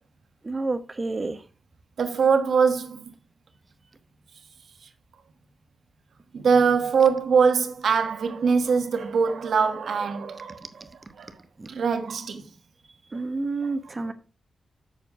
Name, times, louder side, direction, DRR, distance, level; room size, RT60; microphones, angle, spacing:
voice 1, 0.4-1.4 11.6-11.7 13.1-14.1, right 3 dB, 25° right, 0.9 m, -29 dB
voice 2, 2.0-3.1 6.3-10.8 11.2-11.3 11.7-12.4, right 5 dB, 80° right, 1.3 m, -22 dB
7.6 x 6.6 x 4.7 m
wide cardioid pair, 165°, 0 cm